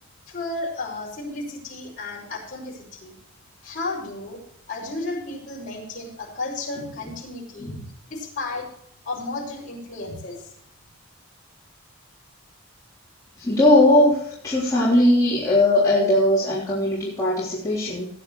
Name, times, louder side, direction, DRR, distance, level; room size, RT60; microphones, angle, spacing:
voice 1, 0.3-3.1 3.6-4.4 4.7-7.7 8.1-8.7 9.0-10.4, left 2 dB, 40° left, -3 dB, 5.7 m, -33 dB
voice 2, 13.4-18.1, left 1 dB, 15° left, -9 dB, 3.6 m, -19 dB
18.5 x 9.8 x 3.2 m, 0.69 s
head